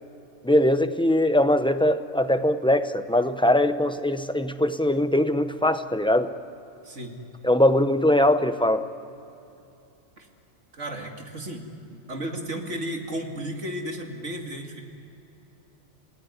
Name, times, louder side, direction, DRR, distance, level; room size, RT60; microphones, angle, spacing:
voice 1, 0.4-6.3 7.4-8.9, left 1 dB, 5° left, 9 dB, 0.7 m, -21 dB
voice 2, 10.7-14.8, right 1 dB, 80° right, 2 dB, 2.8 m, -34 dB
28.0 x 18.5 x 9.9 m, 2.8 s
omnidirectional pair, 1.2 m